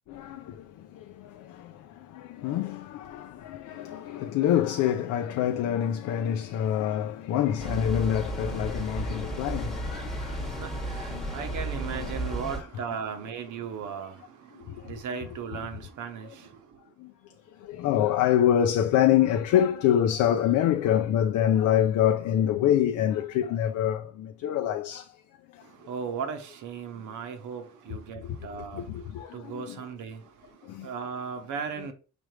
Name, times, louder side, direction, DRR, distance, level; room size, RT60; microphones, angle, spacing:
voice 1, 0.1-11.4 11.9-12.1 14.7-14.9 17.0-17.1 17.6-25.1 25.5-25.6 28.2-28.4 28.7-29.8 30.6-30.9, left 10 dB, 80° left, 0.5 m, -26 dB
sound 1, 7.6-12.6, right 1 dB, ahead, 1.2 m, -33 dB
voice 2, 10.4-16.6 25.7-28.9 29.3-30.5 30.8-31.9, right 6 dB, 80° right, 0.9 m, -37 dB
5.0 x 3.3 x 3.2 m
cardioid pair, 90°, 30 cm